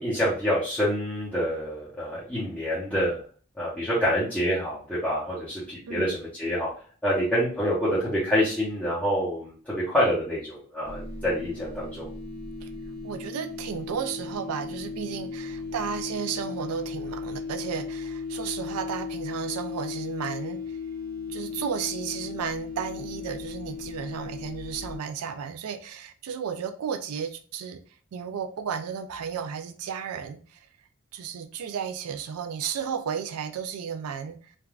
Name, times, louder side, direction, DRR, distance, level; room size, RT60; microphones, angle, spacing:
voice 1, 0.0-3.2 3.6-6.7 7.0-12.1, equal, 5° left, -11 dB, 0.7 m, -27 dB
voice 2, 5.9-6.2 12.6-12.7 13.0-20.8 21.3-27.8 28.1-30.7 31.1-34.4, right 7 dB, 90° right, 8 dB, 0.4 m, -33 dB
sound 1, 10.8-25.0, left 4 dB, 40° right, 0.6 m, -36 dB
3.3 x 2.3 x 2.3 m, 0.41 s
head